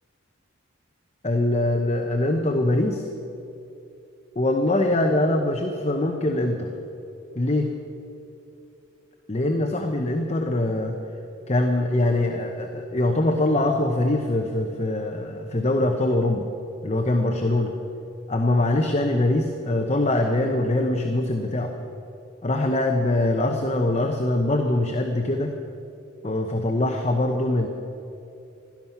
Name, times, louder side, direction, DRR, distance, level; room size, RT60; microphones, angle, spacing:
voice 1, 1.2-3.0 4.4-6.7 7.4-7.7 9.3-11.0 11.5-16.5 16.8-17.7 18.3-21.7 22.4-25.5 26.2-27.7, left 1 dB, 30° left, 3 dB, 0.8 m, -23 dB
16.5 x 13.0 x 5.8 m, 2.8 s
head